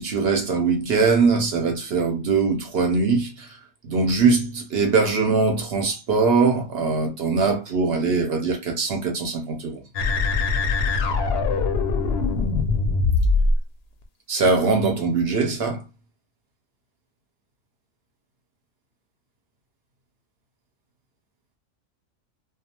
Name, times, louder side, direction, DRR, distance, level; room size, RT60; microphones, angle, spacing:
voice 1, 0.0-3.6 3.8-9.8 14.3-15.8, right 4 dB, 60° right, 0.8 m, -22 dB
sound 1, 9.9-13.6, left 3 dB, 65° left, 0.7 m, -22 dB
2.3 x 2.3 x 2.8 m
omnidirectional pair, 1.3 m